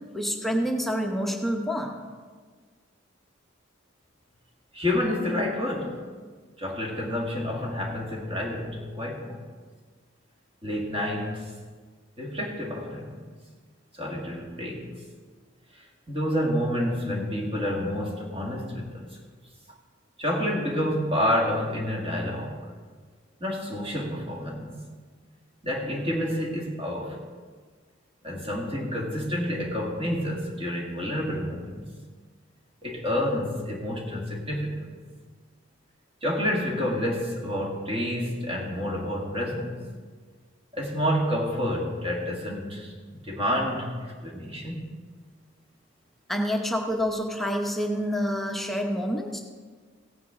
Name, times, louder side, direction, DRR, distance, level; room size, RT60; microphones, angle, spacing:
voice 1, 0.1-2.0 46.3-49.4, equal, ahead, 1 dB, 0.8 m, -27 dB
voice 2, 4.7-6.0 6.6-9.4 10.6-11.5 12.2-13.3 13.9-14.9 16.1-19.1 20.2-22.6 23.4-24.8 25.6-27.2 28.2-31.8 32.8-35.0 36.2-39.8 40.7-44.9, left 1 dB, 30° right, -2 dB, 1.9 m, -29 dB
16.5 x 9.2 x 3.6 m, 1.5 s
head